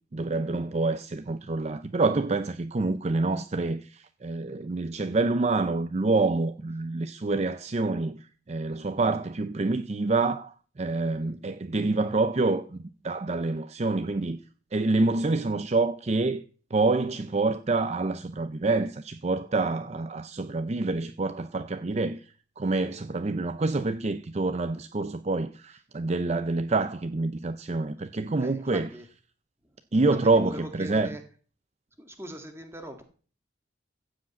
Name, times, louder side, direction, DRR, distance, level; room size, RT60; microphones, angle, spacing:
voice 1, 0.1-14.4 14.7-16.4 16.7-28.9 29.9-31.1, right 3 dB, 35° right, 0.5 m, -27 dB
voice 2, 28.4-29.1 29.6-29.8 30.3-31.2 32.0-33.0, right 1 dB, 15° right, 1.7 m, -41 dB
15.0 x 5.2 x 8.4 m
head